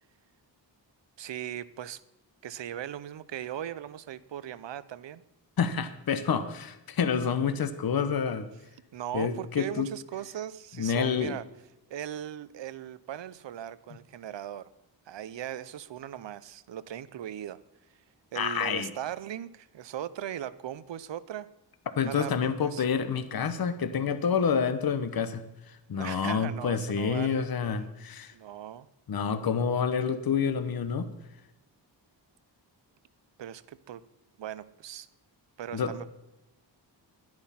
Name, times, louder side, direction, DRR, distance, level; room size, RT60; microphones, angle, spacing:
voice 1, 1.2-2.0 2.4-5.2 8.9-11.4 11.9-14.7 15.1-17.6 18.3-21.5 22.0-22.3 22.6-22.8 25.9-27.5 28.3-28.9 33.4-34.0 34.4-35.1 35.6-36.1, right 11 dB, 75° right, 16 dB, 0.7 m, -38 dB
voice 2, 5.6-8.5 9.1-9.9 10.8-11.3 18.3-18.9 22.0-28.3 29.1-31.1 35.7-35.9, left 6 dB, 55° left, 11 dB, 0.9 m, -28 dB
11.5 x 10.5 x 5.7 m, 0.94 s
wide cardioid pair, 140°, 44 cm